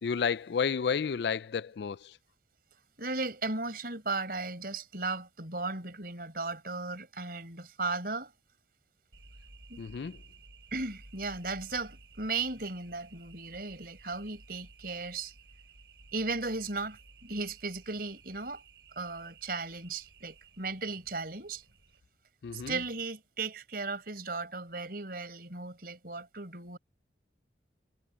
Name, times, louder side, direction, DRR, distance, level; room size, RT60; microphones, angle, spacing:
voice 1, 0.0-2.1 9.8-10.2 22.4-22.8, left 6 dB, 65° left, 0.4 m, -31 dB
voice 2, 3.0-8.3 9.7-9.8 10.7-15.3 16.1-18.6 19.0-21.6 22.5-26.8, right 3 dB, 50° right, 5.4 m, -36 dB
sound 1, 9.1-22.0, right 3 dB, 75° right, 7.5 m, -56 dB
head